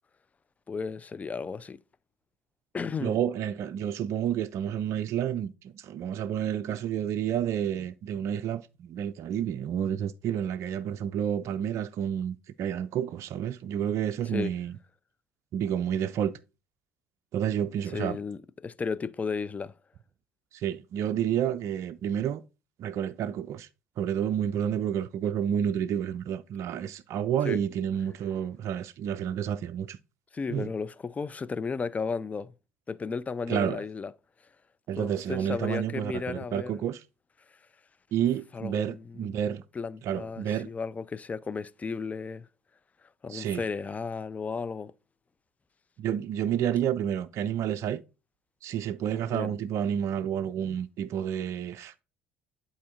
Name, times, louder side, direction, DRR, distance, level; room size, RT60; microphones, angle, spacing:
voice 1, 0.7-1.8 2.7-3.2 14.2-14.5 17.9-19.7 27.4-27.6 30.3-32.5 32.9-34.1 35.0-36.8 37.5-37.6 38.5-39.3 39.7-42.5 43.2-44.9 49.1-49.6, left 5 dB, 20° left, 0.4 m, -34 dB
voice 2, 3.0-14.7 15.5-16.3 17.3-18.2 20.5-22.4 22.8-23.7 24.0-30.0 30.5-30.7 33.5-33.8 34.9-37.0 38.1-39.6 40.0-40.7 43.3-43.6 46.0-48.0 48.6-51.9, right 9 dB, 50° right, 0.4 m, -30 dB
11.0 x 4.2 x 2.4 m
hypercardioid pair, 60°, 6 cm